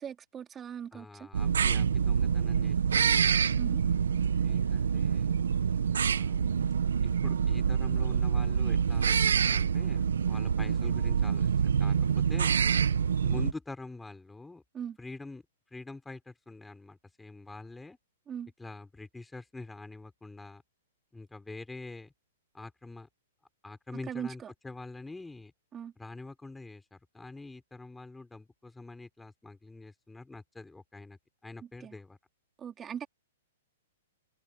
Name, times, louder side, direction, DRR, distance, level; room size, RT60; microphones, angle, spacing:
voice 1, 0.0-1.3 3.6-3.8 14.7-15.0 18.3-18.5 24.1-24.5 25.7-25.9 31.8-31.9 32.6-33.1, right 8 dB, 20° right, 3.9 m, -39 dB
voice 2, 0.9-3.4 4.4-5.3 6.0-6.4 7.0-11.5 11.8-12.6 13.2-14.6 15.0-15.4 15.7-18.0 18.6-20.6 21.1-22.1 22.5-23.1 23.6-25.5 26.0-32.2, left 3 dB, 5° left, 4.2 m, -45 dB
sound 1, 1.3-13.5, right 7 dB, 80° right, 1.4 m, -26 dB
hypercardioid pair, 125°, 0 cm